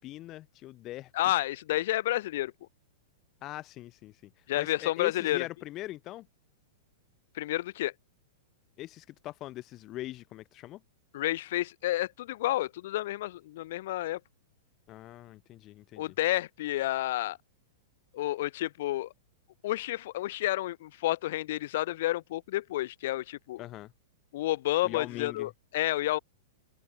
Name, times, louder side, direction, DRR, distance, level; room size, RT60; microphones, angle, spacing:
voice 1, 0.0-1.1 3.4-6.3 8.8-10.8 14.9-16.1 23.6-23.9 24.8-25.5, left 16 dB, 35° left, 1.2 m, -41 dB
voice 2, 1.1-2.5 4.5-5.5 7.3-7.9 11.1-14.2 16.0-17.4 18.1-19.1 19.6-23.6 24.3-26.2, left 15 dB, 55° left, 1.5 m, -30 dB
figure-of-eight pair, 100°, 0 cm